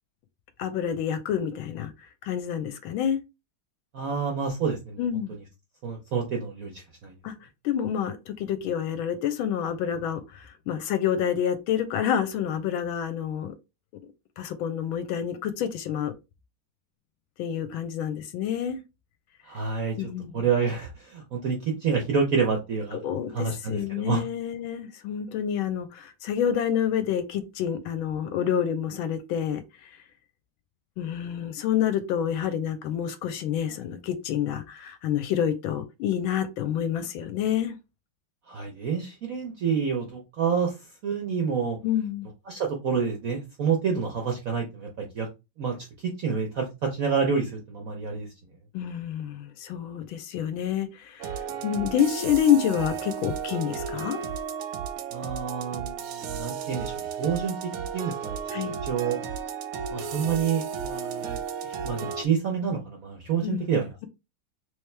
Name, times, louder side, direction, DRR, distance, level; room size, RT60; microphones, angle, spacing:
voice 1, 0.6-1.9 2.2-3.2 5.0-5.3 7.2-7.3 7.6-13.5 14.4-16.1 17.4-18.8 20.0-20.3 22.9-29.9 31.0-37.8 41.8-42.3 48.7-54.2 58.5-58.7 63.4-63.7, left 9 dB, 80° left, 1.3 m, -28 dB
voice 2, 3.9-5.0 5.8-7.1 19.4-20.0 20.3-23.0 23.3-24.2 38.5-40.7 41.0-41.8 42.5-45.3 45.6-45.7 46.2-48.3 55.1-57.5 57.9-58.4 58.6-59.2 59.9-63.9, right 6 dB, 65° right, 0.8 m, -28 dB
sound 1, 51.2-62.2, right 7 dB, 85° right, 1.5 m, -34 dB
3.4 x 3.1 x 3.2 m
omnidirectional pair, 2.3 m